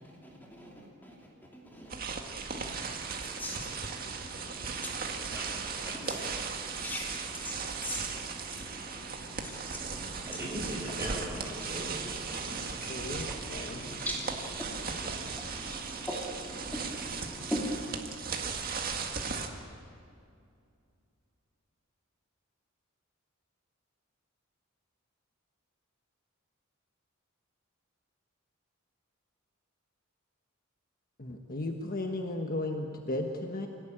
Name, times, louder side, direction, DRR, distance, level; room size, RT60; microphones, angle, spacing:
sound 1, 1.9-19.5, right 5 dB, 45° right, 1.9 m, -37 dB
voice 1, 2.5-5.3 6.0-10.4 11.6-11.7 12.3-17.9, equal, 10° left, -2 dB, 3.1 m, -41 dB
voice 2, 5.0-5.5 5.8-6.5 10.3-12.5, right 1 dB, 15° right, -3 dB, 6.7 m, -41 dB
voice 3, 12.7-14.0 31.2-33.7, left 2 dB, 45° left, 3 dB, 1.4 m, -35 dB
26.5 x 18.0 x 8.8 m, 2.4 s
head